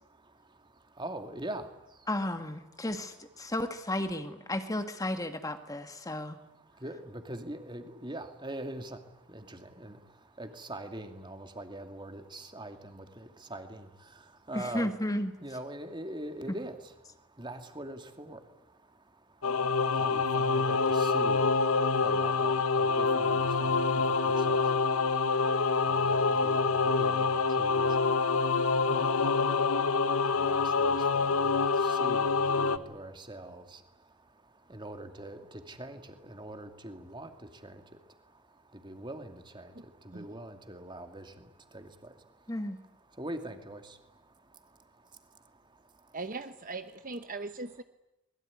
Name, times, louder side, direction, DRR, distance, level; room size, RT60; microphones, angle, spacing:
voice 1, 1.0-1.6 6.8-8.9 9.3-9.4 9.8-10.0 10.4-13.0 13.5-13.8 14.5-14.9 15.4-16.7 17.4-18.4 20.0-21.5 22.0-23.7 24.5-24.6 25.9-26.7 27.0-27.9 30.5-33.6 34.7-35.4 35.7-36.0 36.3-37.3 38.8-39.6 40.1-41.2 41.7-41.8 43.2-43.8, right 1 dB, 20° right, 6 dB, 2.6 m, -42 dB
voice 2, 2.1-6.4 14.5-15.3 16.5-16.6 42.5-42.8, left 1 dB, 15° left, 8 dB, 1.7 m, -33 dB
Singing / Musical instrument, 19.4-32.8, left 4 dB, 80° left, 1.3 m, -26 dB
voice 3, 46.1-47.8, right 3 dB, 40° right, 9 dB, 1.0 m, -39 dB
25.0 x 21.5 x 9.8 m, 0.93 s
head